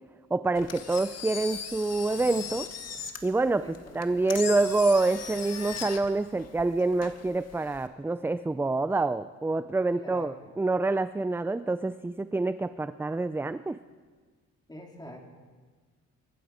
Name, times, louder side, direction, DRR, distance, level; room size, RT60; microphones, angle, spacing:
voice 1, 0.3-2.7 3.2-13.8, right 3 dB, 10° right, 13 dB, 0.4 m, -27 dB
Engine, 0.5-7.9, left 7 dB, 55° left, 1.6 m, -39 dB
voice 2, 3.6-4.0 10.0-10.4 14.7-15.2, left 1 dB, 15° left, 0 dB, 3.8 m, -45 dB
24.5 x 11.5 x 5.1 m, 1.4 s
cardioid pair, 90°, 30 cm